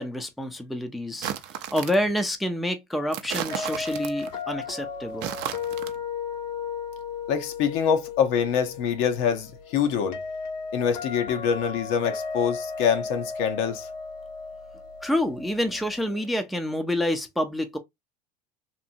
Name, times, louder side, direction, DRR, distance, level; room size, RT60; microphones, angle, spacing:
voice 1, 0.0-1.3 1.6-5.3 15.0-17.8, left 1 dB, ahead, 0.5 m, -28 dB
sound 1, 1.1-2.1 3.1-4.4 5.1-6.0, right 10 dB, 55° right, 0.5 m, -34 dB
sound 2, 3.5-16.4, left 5 dB, 80° left, 1.3 m, -35 dB
voice 2, 7.3-10.2 10.7-13.9, left 7 dB, 65° left, 0.8 m, -25 dB
2.9 x 2.6 x 2.5 m
supercardioid pair, 105°, 21 cm